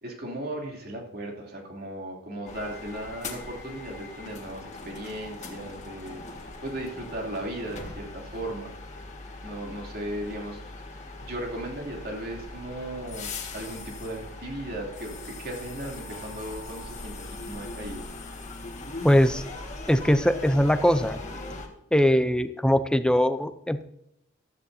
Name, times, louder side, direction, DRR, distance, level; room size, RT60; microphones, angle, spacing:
voice 1, 0.0-8.7 9.4-10.7 11.2-18.0, right 1 dB, 50° right, 0 dB, 3.0 m, -36 dB
sound 1, 2.5-21.7, left 2 dB, 35° left, 1.8 m, -40 dB
voice 2, 19.0-19.4 19.9-21.2 21.9-23.8, equal, 5° left, 10 dB, 0.5 m, -21 dB
15.0 x 13.0 x 2.8 m, 0.79 s
head